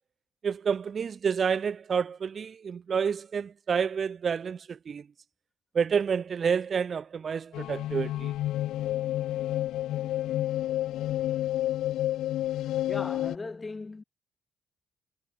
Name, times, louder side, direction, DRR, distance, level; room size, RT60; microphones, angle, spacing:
voice 1, 0.4-5.0 5.7-8.3, right 6 dB, 45° right, 1.5 m, -29 dB
sound 1, 7.5-13.4, left 14 dB, 85° left, 1.4 m, -30 dB
voice 2, 12.9-14.0, left 3 dB, 25° left, 6.4 m, -38 dB
cardioid pair, 90°, 0 cm